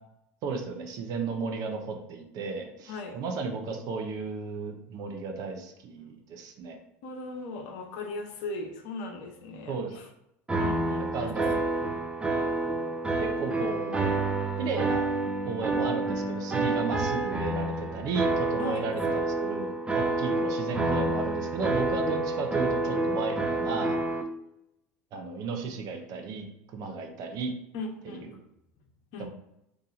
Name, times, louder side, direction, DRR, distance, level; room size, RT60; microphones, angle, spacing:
voice 1, 0.4-6.8 9.7-9.9 11.1-11.6 13.2-14.2 14.6-15.1 15.4-19.7 19.9-24.0 25.1-26.4 26.7-27.5 28.0-28.4 29.2-29.3, right 4 dB, 55° right, 4 dB, 0.8 m, -34 dB
voice 2, 7.0-10.1 10.6-11.3 18.6-18.8 27.7-28.3 29.1-29.3, left 3 dB, 65° left, 4 dB, 0.8 m, -38 dB
sound 1, 10.5-24.2, right 2 dB, 15° right, 0.7 m, -28 dB
2.9 x 2.6 x 4.0 m, 0.82 s
hypercardioid pair, 85°, 8 cm